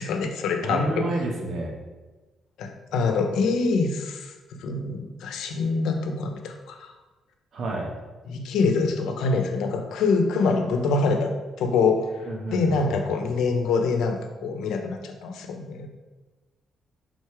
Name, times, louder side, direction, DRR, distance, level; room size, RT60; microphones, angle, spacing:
voice 1, 0.0-1.1 2.6-4.3 4.6-6.9 8.3-11.3 11.6-12.1 12.5-15.9, left 4 dB, 85° left, 5 dB, 0.8 m, -25 dB
voice 2, 0.6-1.7 7.5-7.9 12.2-13.0, right 2 dB, 60° right, 0 dB, 1.3 m, -29 dB
6.5 x 3.9 x 4.8 m, 1.2 s
cardioid pair, 90°, 0 cm